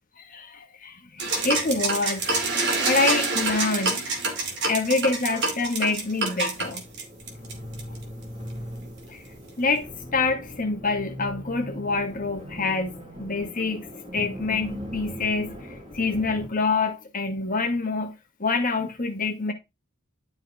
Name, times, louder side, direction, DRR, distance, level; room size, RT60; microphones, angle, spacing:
voice 1, 0.2-2.3 2.6-4.0 4.7-6.8 9.1-9.2 9.6-13.9 14.1-18.1 18.4-19.5, left 3 dB, 40° left, 1.7 m, -26 dB
sound 1, 1.2-8.0, right 3 dB, 55° right, 2.6 m, -26 dB
sound 2, 6.5-16.5, equal, 25° right, 4.8 m, -39 dB
11.0 x 4.5 x 3.5 m
head